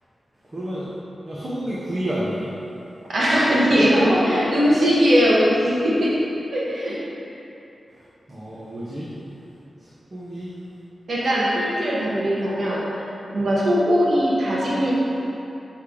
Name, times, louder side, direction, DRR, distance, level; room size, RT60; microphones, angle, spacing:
voice 1, 0.5-0.9 1.2-2.5 3.9-4.6 8.3-9.1 9.8-10.5, equal, 25° right, -8 dB, 0.9 m, -28 dB
voice 2, 3.1-6.1 6.5-7.0 11.1-13.0 13.3-14.9, equal, 60° right, -7 dB, 1.2 m, -20 dB
7.3 x 3.5 x 5.1 m, 2.8 s
wide cardioid pair, 125°, 0 cm